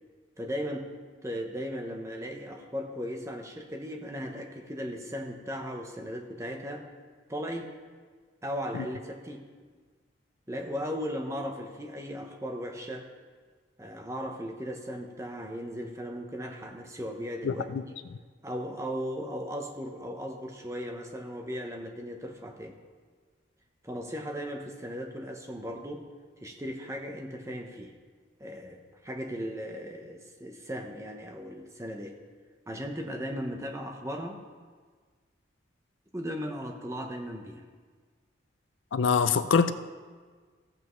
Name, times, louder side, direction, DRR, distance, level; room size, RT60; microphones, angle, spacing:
voice 1, 0.4-0.9 1.2-6.9 7.3-7.7 8.4-9.4 10.5-13.1 13.8-17.9 18.4-22.8 23.8-26.0 26.4-27.9 28.4-32.2 32.7-34.4 36.1-37.6, equal, 15° right, 0.8 m, -37 dB
voice 2, 17.4-17.8 38.9-39.7, left 5 dB, 80° left, 0.4 m, -24 dB
15.0 x 8.0 x 3.1 m
head